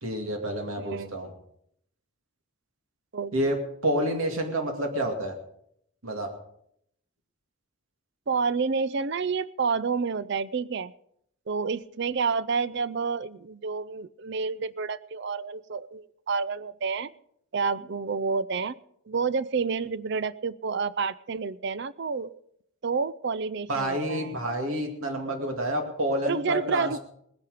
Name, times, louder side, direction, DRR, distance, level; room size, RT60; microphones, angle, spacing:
voice 1, 0.0-1.3 3.3-3.6 3.8-5.4 6.0-6.3 23.7-26.9, right 1 dB, 70° right, 3 dB, 2.4 m, -28 dB
voice 2, 0.8-1.1 3.1-3.3 8.3-10.9 11.5-17.1 17.5-18.7 19.1-22.4 22.8-24.4 26.2-27.0, right 5 dB, 50° right, 18 dB, 0.5 m, -29 dB
20.0 x 10.5 x 5.0 m, 0.72 s
head